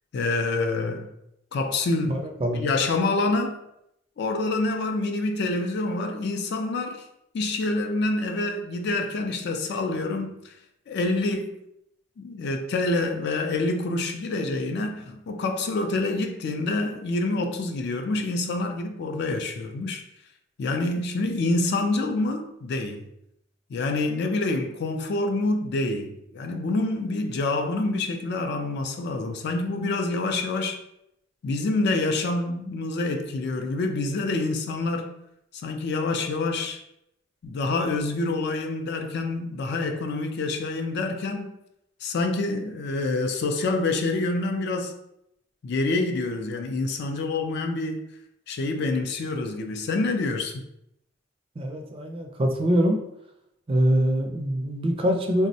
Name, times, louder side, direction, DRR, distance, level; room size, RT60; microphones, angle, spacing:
voice 1, 0.1-1.1 1.5-2.3 2.5-3.6 4.2-7.1 7.3-10.5 10.9-11.5 12.2-20.0 20.6-23.0 23.7-30.8 31.4-35.2 35.6-36.8 37.4-41.5 42.0-44.9 45.6-48.0 48.5-50.7, left 2 dB, 60° left, 0.4 m, -27 dB
voice 2, 2.1-2.6 51.6-53.0 53.7-55.5, equal, 30° right, 0.4 m, -24 dB
3.4 x 2.0 x 2.6 m
head